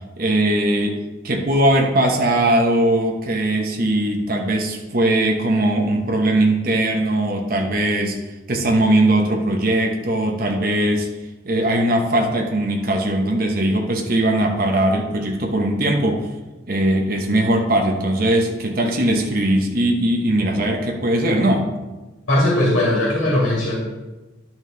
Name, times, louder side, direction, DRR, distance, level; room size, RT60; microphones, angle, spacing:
voice 1, 0.2-8.2 8.5-11.1 11.4-16.3 16.7-21.7, right 1 dB, 45° right, 2 dB, 1.0 m, -20 dB
voice 2, 22.3-23.8, left 1 dB, 85° left, -5 dB, 2.2 m, -18 dB
11.0 x 6.0 x 3.9 m, 1.1 s
head